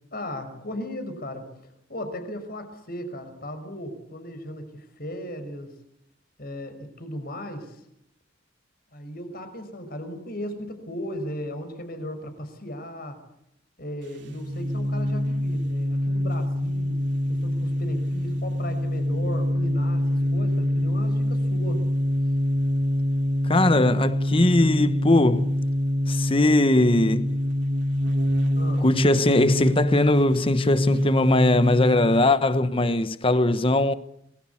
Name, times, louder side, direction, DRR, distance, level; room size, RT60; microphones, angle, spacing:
voice 1, 0.1-1.5 1.9-5.7 6.4-7.8 8.9-13.2 13.8-17.0 17.3-21.8 28.5-28.9, equal, 50° left, 5.8 m, -36 dB
sound 1, 14.0-32.3, equal, 65° right, 2.6 m, -25 dB
voice 2, 23.4-25.5 26.1-27.4 28.8-34.0, left 2 dB, 30° left, 1.1 m, -20 dB
28.5 x 21.0 x 8.5 m
head